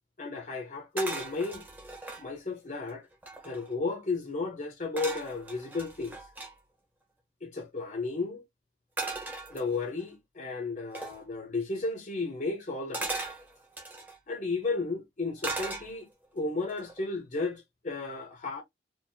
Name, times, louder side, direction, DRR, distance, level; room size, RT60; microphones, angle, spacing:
voice 1, 0.2-1.6 2.2-3.1 3.4-6.2 7.4-8.4 9.5-13.1 14.3-16.1 16.3-18.6, left 3 dB, 45° left, 0.9 m, -33 dB
sound 1, 1.0-2.2 2.8-2.9 3.1-3.7 5.0-6.5 9.0-10.0 10.9-11.2 12.9-14.2 15.4-16.2 16.7-17.0, right 2 dB, 10° right, 1.0 m, -37 dB
4.6 x 2.7 x 2.7 m
head